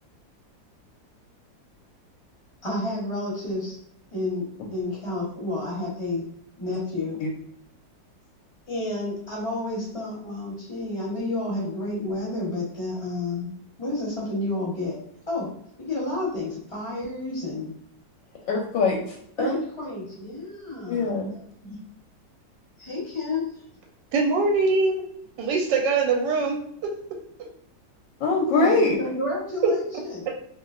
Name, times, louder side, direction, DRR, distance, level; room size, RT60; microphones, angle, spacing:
voice 1, 2.6-3.8 4.1-6.2 6.6-7.2 8.7-13.5 13.8-15.0 15.3-15.5 15.8-17.7 18.3-18.4 19.4-21.2 21.6-21.7 22.8-23.4 28.5-30.3, left 2 dB, 25° left, -6 dB, 0.7 m, -30 dB
voice 2, 18.4-19.2 19.5-19.6 20.9-21.3 28.2-29.0, left 3 dB, 85° left, 0 dB, 1.3 m, -22 dB
voice 3, 24.1-25.0 25.4-26.6 29.6-29.7, right 4 dB, 85° right, 1 dB, 1.3 m, -22 dB
3.1 x 2.9 x 2.4 m, 0.69 s
omnidirectional pair, 2.0 m